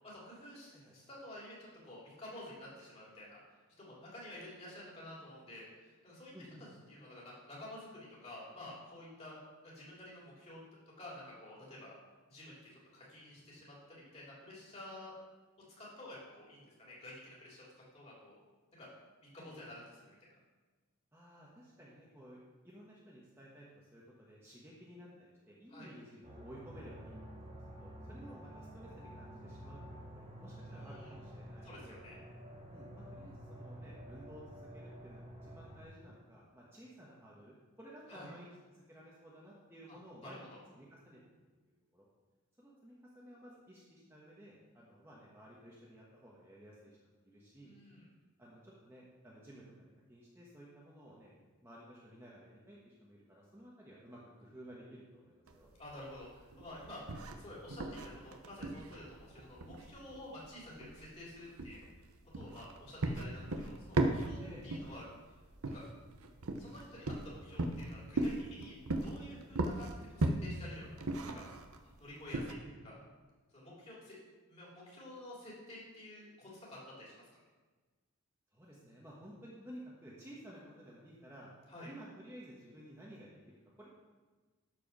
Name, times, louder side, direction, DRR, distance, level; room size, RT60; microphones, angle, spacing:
voice 1, 0.0-6.3 6.9-9.4 9.6-10.6 11.0-11.9 12.3-15.2 15.8-17.7 17.9-18.4 18.8-18.9 19.2-20.2 25.7-25.9 30.7-31.1 31.6-32.2 38.1-38.3 40.2-40.6 47.6-48.1 55.8-61.9 62.3-65.1 65.7-65.8 66.6-70.9 71.3-71.4 72.0-73.0 73.5-74.2 74.5-77.3 81.7-81.9, left 1 dB, 30° left, -6 dB, 3.4 m, -51 dB
voice 2, 6.3-6.6 19.4-19.6 21.1-32.0 32.7-40.5 40.8-41.2 41.6-42.1 42.6-47.0 47.2-47.7 48.4-51.3 51.6-55.7 64.4-64.6 72.4-72.7 78.5-81.5 81.8-83.9, equal, 10° right, -6 dB, 1.3 m, -54 dB
sound 1, 26.2-35.8, equal, 25° right, 1.6 m, -50 dB
sound 2, 55.5-72.5, right 2 dB, 75° right, 0.8 m, -38 dB
12.5 x 4.8 x 6.0 m, 1.3 s
head